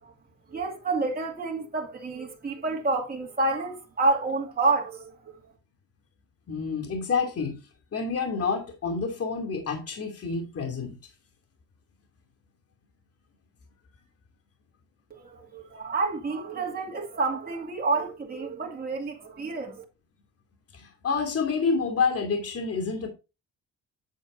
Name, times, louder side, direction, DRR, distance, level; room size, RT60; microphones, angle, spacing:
voice 1, 0.5-5.5 15.1-19.8, right 3 dB, 30° right, 2.5 m, -29 dB
voice 2, 6.5-7.6 7.9-11.0 20.7-23.1, left 5 dB, 50° left, 2.8 m, -28 dB
9.2 x 8.0 x 2.7 m
cardioid pair, 90°, 30 cm